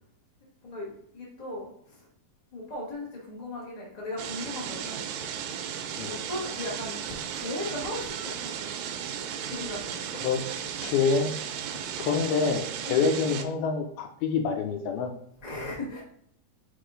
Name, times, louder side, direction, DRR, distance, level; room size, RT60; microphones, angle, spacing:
voice 1, 0.6-2.1 2.5-5.1 6.1-8.6 9.5-10.1 12.3-12.5 12.8-13.1 15.4-16.0, left 1 dB, 35° left, -5 dB, 0.5 m, -37 dB
sound 1, 4.2-13.4, right 8 dB, 80° right, 2.1 m, -35 dB
voice 2, 10.8-11.3 12.0-15.1, left 5 dB, 80° left, 5 dB, 2.4 m, -26 dB
5.2 x 5.0 x 3.8 m, 0.66 s
omnidirectional pair, 4.6 m